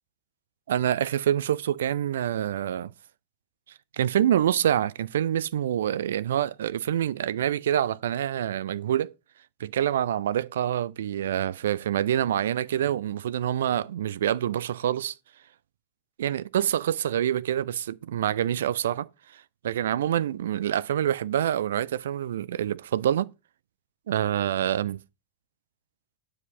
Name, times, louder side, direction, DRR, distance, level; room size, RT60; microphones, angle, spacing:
voice 1, 0.7-2.9 4.0-9.1 9.6-15.2 16.2-23.3 24.1-25.0, right 10 dB, 60° right, 0.4 m, -26 dB
9.6 x 4.9 x 5.0 m
figure-of-eight pair, 90°, 0 cm